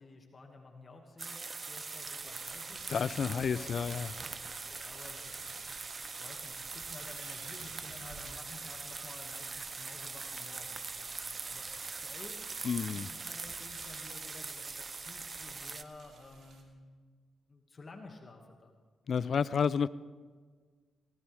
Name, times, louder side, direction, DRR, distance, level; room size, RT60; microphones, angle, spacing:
voice 1, 0.0-2.9 3.4-3.9 4.6-5.9 6.1-12.4 12.9-16.9 17.5-18.8, left 3 dB, 45° left, 2.1 m, -53 dB
sound 1, 1.2-15.8, right 4 dB, 40° right, 0.8 m, -42 dB
sound 2, 2.2-16.6, right 4 dB, 65° right, 2.7 m, -54 dB
voice 2, 2.9-4.1 12.6-13.1 19.1-19.9, left 6 dB, 60° left, 0.5 m, -30 dB
19.5 x 19.0 x 3.6 m
hypercardioid pair, 45°, 0 cm